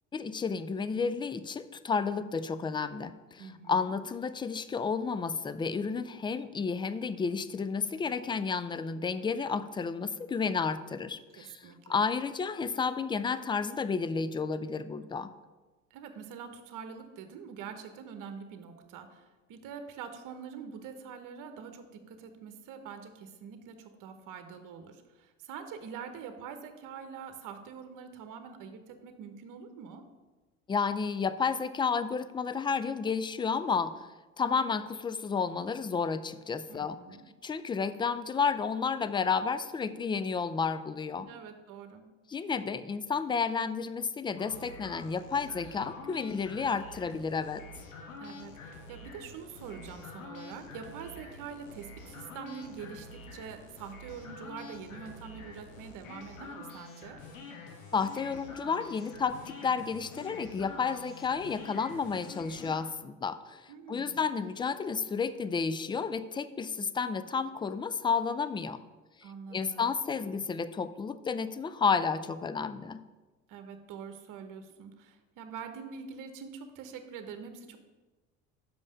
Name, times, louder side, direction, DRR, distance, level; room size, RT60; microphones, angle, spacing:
voice 1, 0.1-15.3 30.7-34.1 34.4-37.0 37.4-41.3 42.3-47.6 57.9-68.8 69.2-73.0, left 5 dB, 15° left, 13 dB, 0.4 m, -31 dB
voice 2, 3.4-4.0 11.4-12.0 15.9-30.0 36.7-37.2 41.2-42.0 48.2-57.2 63.7-64.2 69.2-69.9 73.5-77.8, right 6 dB, 55° right, 8 dB, 1.1 m, -45 dB
sound 1, 44.4-62.8, left 3 dB, 85° left, 1.3 m, -47 dB
6.1 x 5.4 x 6.4 m, 1.2 s
hypercardioid pair, 70°, 39 cm